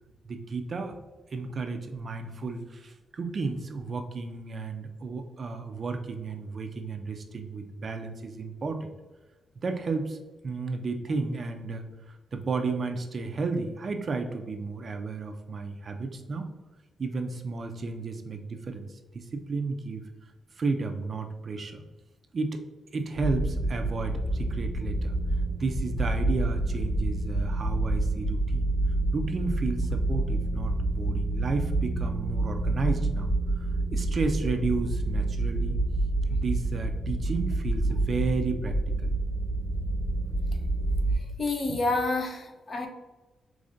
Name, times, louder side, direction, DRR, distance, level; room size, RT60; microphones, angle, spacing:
voice 1, 0.2-1.0 1.3-8.9 9.6-10.2 10.4-16.5 17.0-20.1 20.6-21.8 22.3-22.6 22.9-25.1 25.6-28.7 29.1-35.8 36.3-39.2, right 4 dB, 40° right, 6 dB, 0.4 m, -33 dB
sound 1, 23.2-41.2, right 2 dB, 5° right, 0.9 m, -28 dB
voice 2, 41.4-42.9, left 2 dB, 35° left, 4 dB, 0.6 m, -28 dB
5.0 x 3.2 x 2.5 m, 1.2 s
wide cardioid pair, 145°, 0 cm